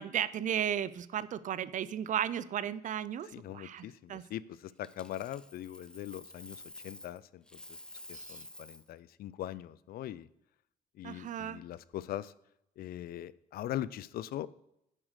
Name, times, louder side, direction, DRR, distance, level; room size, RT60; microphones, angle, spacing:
voice 1, 0.0-3.3 3.5-4.2 8.1-8.4 11.0-11.6, right 10 dB, 50° right, 17 dB, 0.5 m, -35 dB
voice 2, 3.3-7.8 8.1-10.3 10.9-12.3 12.8-14.5, left 13 dB, 70° left, 19 dB, 0.4 m, -41 dB
Coin (dropping), 4.8-7.2 7.5-8.9 11.7-12.0, left 1 dB, 5° left, 0.5 m, -50 dB
7.5 x 4.8 x 6.4 m, 0.80 s
cardioid pair, 85°, 16 cm